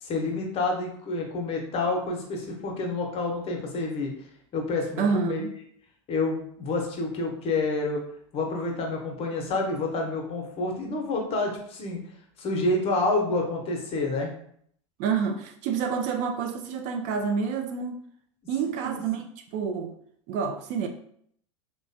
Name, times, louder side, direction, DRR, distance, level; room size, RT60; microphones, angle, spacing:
voice 1, 0.0-4.1 4.5-5.5 6.1-8.0 8.3-12.0 12.4-14.3 18.6-18.9, left 2 dB, 40° left, 0.8 m, -28 dB
voice 2, 5.0-5.6 15.0-18.0 18.5-19.2 19.5-19.9 20.3-20.9, right 6 dB, 50° right, 0.4 m, -28 dB
3.1 x 2.2 x 2.6 m
hypercardioid pair, 85°, 16 cm